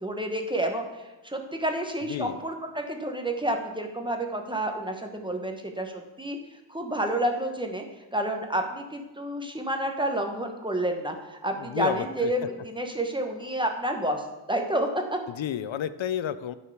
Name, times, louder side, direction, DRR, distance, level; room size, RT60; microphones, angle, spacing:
voice 1, 0.0-6.4 6.7-7.8 8.1-15.2, right 1 dB, 10° right, 3 dB, 1.1 m, -29 dB
voice 2, 2.1-2.4 11.6-12.3 15.3-16.6, left 10 dB, 80° left, 14 dB, 0.6 m, -31 dB
10.0 x 4.7 x 6.6 m, 1.1 s
wide cardioid pair, 95°, 46 cm